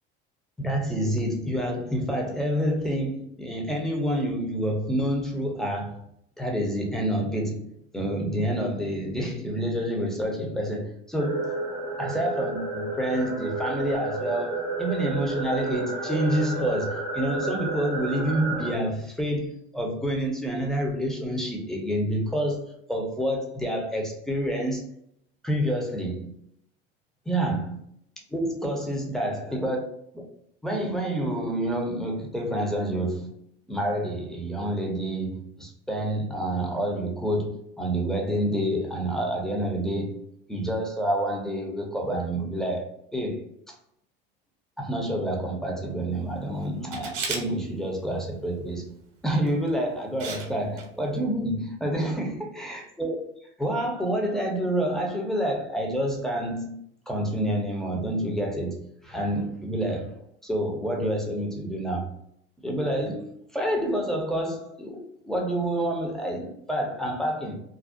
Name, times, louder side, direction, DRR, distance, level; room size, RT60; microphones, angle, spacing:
voice 1, 0.6-6.0 6.4-7.7 7.9-11.6 12.0-24.8 25.4-26.3 27.3-27.8 28.3-29.8 30.1-30.2 30.6-33.3 33.7-40.2 40.5-43.5 44.8-48.9 49.2-53.2 53.6-56.8 57.1-60.1 60.4-62.1 62.6-67.6, right 1 dB, ahead, 0.7 m, -28 dB
sound 1, 11.2-18.7, right 3 dB, 40° left, 1.1 m, -31 dB
Camera, 46.9-47.4 49.5-49.7 50.2-50.5 50.8-50.9, right 4 dB, 60° right, 0.8 m, -32 dB
2.5 x 2.1 x 2.5 m
supercardioid pair, 85°, 29 cm